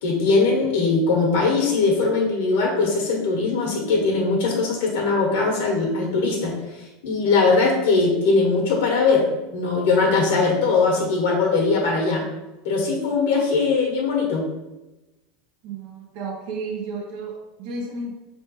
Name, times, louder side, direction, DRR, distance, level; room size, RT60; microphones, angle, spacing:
voice 1, 0.0-6.5 7.0-12.2 12.6-14.4, left 4 dB, 80° left, -2 dB, 1.2 m, -20 dB
voice 2, 15.6-18.1, right 3 dB, 60° right, 1 dB, 0.8 m, -32 dB
4.4 x 3.3 x 3.0 m, 1.0 s
supercardioid pair, 125°, 0 cm